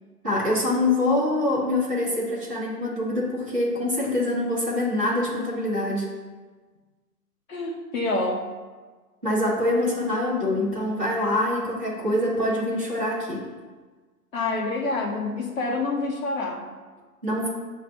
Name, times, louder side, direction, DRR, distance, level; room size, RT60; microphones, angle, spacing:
voice 1, 0.2-6.1 9.2-13.4 17.2-17.5, left 1 dB, 5° right, -17 dB, 0.5 m, -25 dB
voice 2, 7.5-8.5 14.3-16.6, left 2 dB, 55° left, -1 dB, 1.0 m, -27 dB
7.4 x 2.5 x 5.5 m, 1.4 s
figure-of-eight pair, 130°, 47 cm